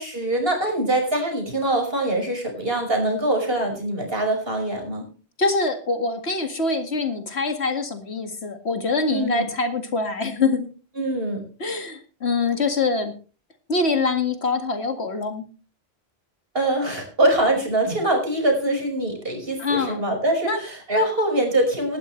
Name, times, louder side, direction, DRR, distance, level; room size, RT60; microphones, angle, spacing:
voice 1, 0.0-5.1 9.1-9.5 11.0-11.4 16.5-22.0, right 1 dB, 65° right, 3 dB, 5.8 m, -23 dB
voice 2, 5.4-10.7 11.6-13.1 13.7-15.4 19.6-20.1 20.4-20.6, left 3 dB, 85° left, 6 dB, 2.3 m, -24 dB
18.5 x 12.5 x 3.2 m, 0.36 s
omnidirectional pair, 1.1 m